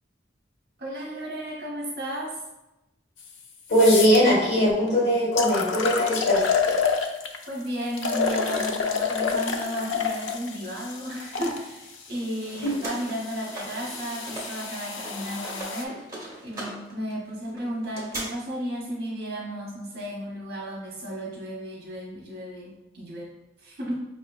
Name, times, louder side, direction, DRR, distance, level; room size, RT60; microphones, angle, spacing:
voice 1, 0.8-2.3 7.5-23.9, right 1 dB, 50° right, -3 dB, 0.9 m, -34 dB
sound 1, 3.2-3.3 3.7-4.2 4.9-5.0 5.4-7.4 8.0-11.6 12.4-15.8, left 5 dB, 80° left, 0.4 m, -28 dB
voice 2, 3.7-6.5 12.6-12.7, equal, 60° left, -7 dB, 1.4 m, -20 dB
sound 2, 12.1-14.7 14.9-18.2, right 1 dB, 15° right, 1.0 m, -39 dB
5.3 x 2.8 x 2.3 m, 0.95 s
head